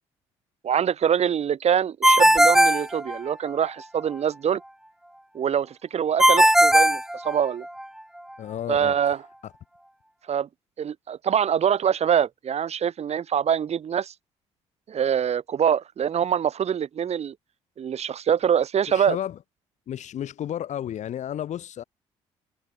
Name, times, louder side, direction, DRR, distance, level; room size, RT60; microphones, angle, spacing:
voice 1, 0.6-4.6 5.3-7.7 8.7-9.2 10.3-10.5 10.8-14.1 14.9-17.3 17.8-19.2, right 8 dB, 55° right, 4.0 m, -24 dB
Ringtone, 2.0-3.7 6.2-7.8, right 1 dB, 5° right, 0.8 m, -18 dB
voice 2, 8.4-9.0 9.4-9.5 18.9-19.4 19.9-21.8, left 10 dB, 65° left, 7.3 m, -32 dB
hypercardioid pair, 55°, 13 cm